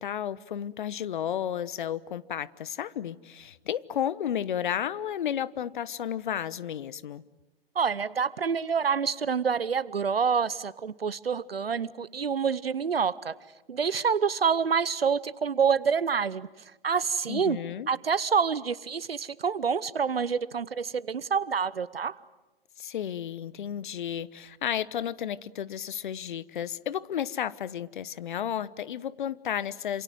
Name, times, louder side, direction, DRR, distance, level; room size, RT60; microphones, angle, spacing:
voice 1, 0.0-7.2 17.3-17.9 22.8-30.0, left 9 dB, 55° left, 1.1 m, -32 dB
voice 2, 7.7-13.3 13.7-16.5 16.8-17.6 17.9-22.2, right 6 dB, 75° right, 0.9 m, -27 dB
27.5 x 27.5 x 7.7 m
figure-of-eight pair, 120°, 29 cm